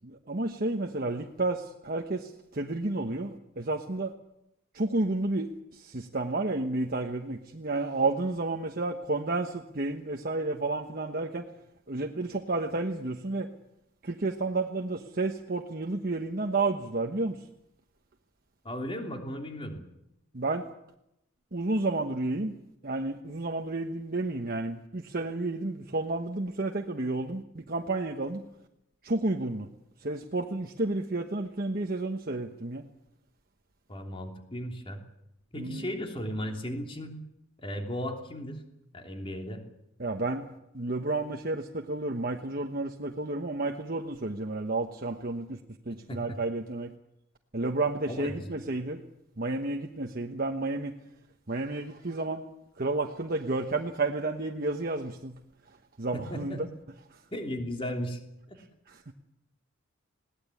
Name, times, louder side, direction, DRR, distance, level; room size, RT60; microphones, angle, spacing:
voice 1, 0.0-4.1 4.7-11.5 11.9-13.5 14.0-17.4 20.3-20.7 21.5-22.5 22.8-28.4 29.0-29.7 30.0-32.9 35.6-35.9 40.0-40.5 40.7-45.6 45.9-46.9 47.5-49.0 49.4-51.0 51.5-52.4 52.8-55.3 56.0-56.7 58.9-59.1, right 2 dB, 45° right, 3 dB, 1.1 m, -31 dB
voice 2, 18.6-19.8 33.9-35.0 35.5-37.2 37.6-38.6 38.9-39.6 45.9-46.4 48.1-48.5 56.1-56.7 57.3-58.2 58.5-58.6, equal, 25° left, 3 dB, 3.1 m, -36 dB
21.0 x 18.0 x 8.5 m, 0.84 s
head